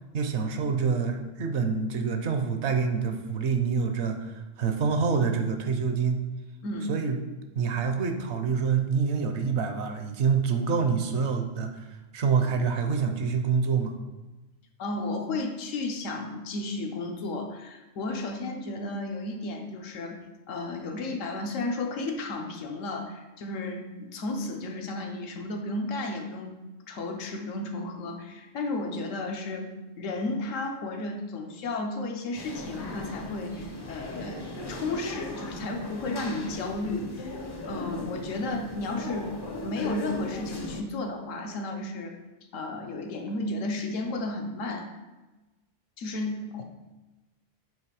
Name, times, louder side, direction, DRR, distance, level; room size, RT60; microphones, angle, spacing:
voice 1, 0.1-6.2 6.9-7.2 7.5-11.9 12.1-13.9, right 5 dB, 65° right, 6 dB, 0.9 m, -26 dB
voice 2, 6.6-7.0 14.8-20.2 20.5-26.6 26.9-29.7 30.0-39.3 39.6-42.2 42.5-44.9 46.0-46.6, left 2 dB, 85° left, 4 dB, 1.1 m, -33 dB
sound 1, 32.4-40.8, left 1 dB, 35° left, 0.4 m, -38 dB
7.6 x 3.0 x 4.8 m, 1.1 s
omnidirectional pair, 1.3 m